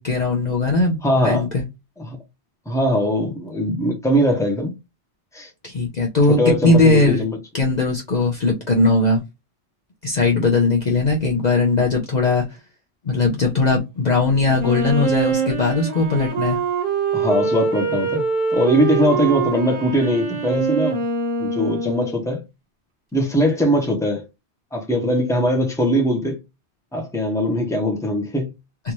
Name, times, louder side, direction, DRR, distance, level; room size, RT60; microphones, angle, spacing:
voice 1, 0.0-1.0 1.2-1.6 5.6-7.2 7.5-9.2 10.0-12.4 13.0-16.6, left 3 dB, 45° left, 0.7 m, -19 dB
voice 2, 1.0-1.4 2.0-2.2 2.7-4.7 5.3-5.5 6.3-7.4 17.1-18.2 18.5-21.0 21.4-22.4 23.1-24.2 24.7-26.4 26.9-28.5, equal, 5° left, 0.9 m, -21 dB
Wind instrument woodwind instrument, 14.6-22.3, right 4 dB, 45° right, 1.4 m, -24 dB
3.3 x 2.6 x 3.0 m
omnidirectional pair, 1.2 m